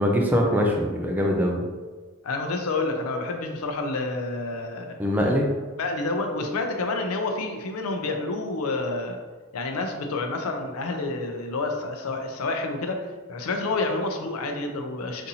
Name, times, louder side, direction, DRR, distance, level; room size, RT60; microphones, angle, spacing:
voice 1, 0.0-1.6 5.0-5.5, equal, 10° right, 0 dB, 0.3 m, -22 dB
voice 2, 2.2-5.0 5.8-9.2 9.5-13.0 13.3-15.3, left 3 dB, 85° left, 4 dB, 0.5 m, -29 dB
4.0 x 2.6 x 2.7 m, 1.4 s
head